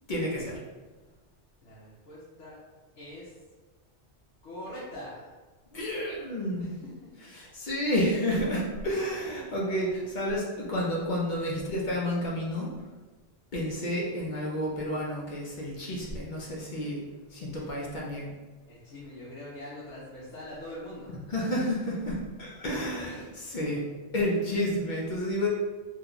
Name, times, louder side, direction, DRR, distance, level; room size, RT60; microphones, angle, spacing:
voice 1, 0.1-0.6 5.7-6.7 7.3-12.7 13.5-17.0 17.3-18.3 21.3-23.8 24.1-25.5, equal, 50° left, -3 dB, 0.6 m, -30 dB
voice 2, 1.6-2.6 3.0-3.3 4.4-5.3 6.6-6.8 7.0-7.3 9.0-9.2 15.9-16.0 17.5-17.6 18.7-21.1, left 1 dB, 90° left, -7 dB, 1.1 m, -43 dB
2.8 x 2.2 x 3.7 m, 1.2 s
omnidirectional pair, 1.2 m